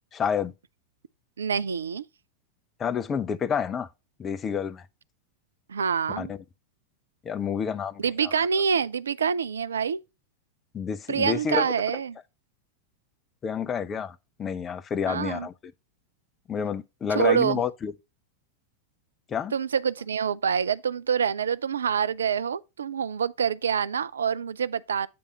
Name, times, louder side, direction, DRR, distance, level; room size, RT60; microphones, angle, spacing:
voice 1, 0.1-0.5 2.8-3.9 4.2-4.8 6.2-6.4 7.2-8.5 10.7-11.7 13.4-15.7 16.5-17.9 19.3-19.5, left 7 dB, 25° left, 0.5 m, -29 dB
voice 2, 1.4-2.0 5.7-6.3 8.0-10.0 11.1-12.2 15.1-15.5 17.1-17.6 19.5-25.1, right 7 dB, 70° right, 0.3 m, -26 dB
8.6 x 3.4 x 5.1 m
figure-of-eight pair, 90°, 0 cm